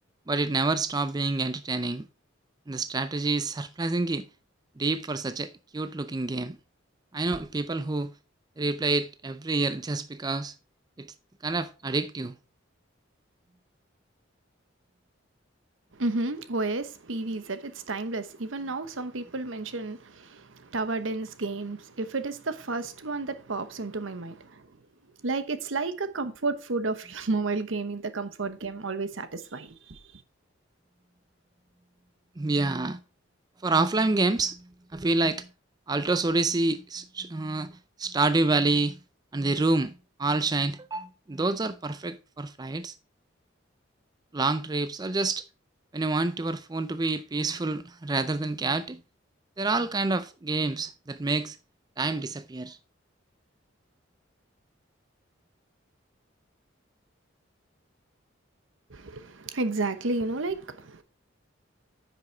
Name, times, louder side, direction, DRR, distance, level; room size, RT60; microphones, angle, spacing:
voice 1, 0.3-2.1 2.7-4.3 4.8-6.6 7.1-8.1 8.6-10.5 11.0-11.1 11.4-12.4 32.4-33.0 33.6-34.7 34.9-35.5 35.9-37.7 38.0-39.0 39.3-39.9 40.2-42.9 44.3-45.4 45.9-49.0 49.6-51.6 52.0-52.8, right 3 dB, 20° right, 0.4 m, -27 dB
voice 2, 15.9-24.7 25.2-30.0 58.9-61.0, right 3 dB, 80° right, 1.0 m, -32 dB
9.6 x 6.1 x 4.4 m
head